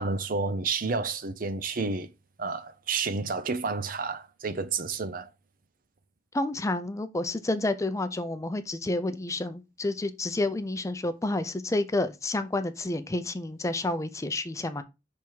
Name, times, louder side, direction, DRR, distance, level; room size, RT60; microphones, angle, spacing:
voice 1, 0.0-2.1 2.4-5.3, right 4 dB, 50° right, 0.6 m, -30 dB
voice 2, 6.3-14.8, left 2 dB, 15° left, 0.4 m, -30 dB
6.1 x 3.5 x 4.6 m
head